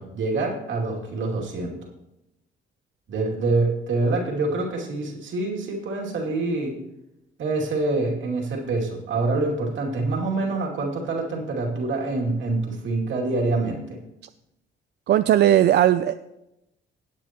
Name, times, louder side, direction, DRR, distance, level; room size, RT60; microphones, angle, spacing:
voice 1, 0.0-1.8 3.1-6.8 7.4-14.0, right 3 dB, 75° right, -1 dB, 2.5 m, -26 dB
voice 2, 15.1-16.2, right 11 dB, 60° right, 11 dB, 0.4 m, -17 dB
17.0 x 8.3 x 3.0 m, 0.89 s
cardioid pair, 90°, 20 cm